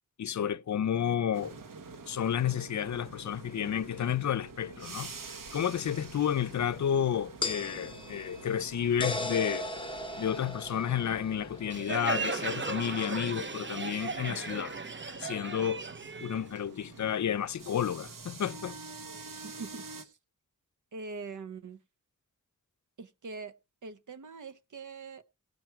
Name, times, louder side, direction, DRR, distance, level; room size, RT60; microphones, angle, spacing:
voice 1, 0.2-1.6 2.1-9.7 10.2-14.8 15.2-15.8 16.2-18.8, left 9 dB, 60° left, 0.5 m, -31 dB
sound 1, 1.3-20.0, right 4 dB, 85° right, 1.3 m, -48 dB
sound 2, 5.5-5.6 7.4-11.8, left 2 dB, 15° left, 0.8 m, -37 dB
Crowd, 11.7-17.1, right 4 dB, 35° right, 0.9 m, -36 dB
voice 2, 19.4-20.2 20.9-21.8 23.0-23.5 23.8-25.2, right 4 dB, 70° right, 0.8 m, -43 dB
17.0 x 5.9 x 4.5 m
wide cardioid pair, 85°, 32 cm